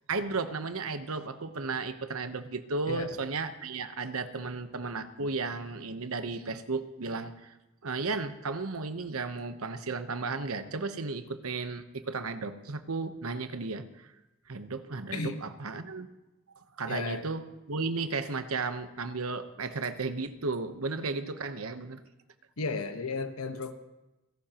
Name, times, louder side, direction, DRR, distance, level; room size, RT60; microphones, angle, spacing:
voice 1, 0.1-7.5 7.8-14.1 14.5-16.1 16.5-22.0, right 3 dB, 80° right, 9 dB, 1.0 m, -34 dB
voice 2, 2.9-3.2 5.2-5.3 15.1-15.4 16.8-17.2 22.6-23.7, left 3 dB, 80° left, 8 dB, 1.2 m, -34 dB
29.0 x 12.0 x 3.0 m, 1.0 s
head